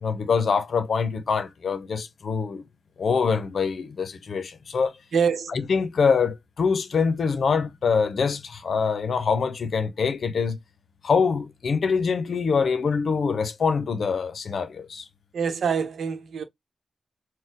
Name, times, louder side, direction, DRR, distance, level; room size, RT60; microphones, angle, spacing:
voice 1, 0.0-2.6 3.0-4.9 5.5-10.6 11.0-15.1, left 5 dB, 75° left, 0.6 m, -24 dB
voice 2, 5.1-5.6 15.3-16.4, right 6 dB, 90° right, 0.8 m, -25 dB
4.3 x 2.2 x 3.5 m
cardioid pair, 55°, 0 cm